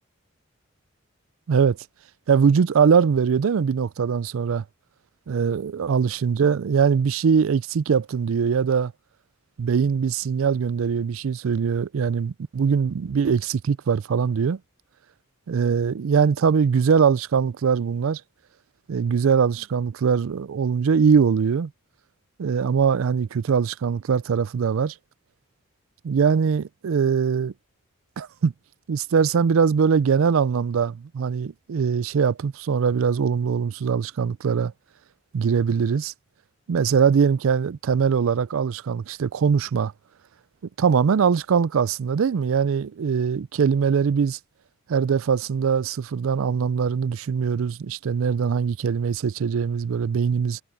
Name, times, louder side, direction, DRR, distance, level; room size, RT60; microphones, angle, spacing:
voice 1, 2.3-4.6 5.3-8.9 9.6-14.6 15.5-18.2 18.9-21.7 22.4-25.0 26.0-27.5 28.2-28.5 28.9-34.7 35.3-36.1 36.7-39.9 40.8-44.4 44.9-50.6, right 6 dB, 70° right, 0.4 m, -22 dB
head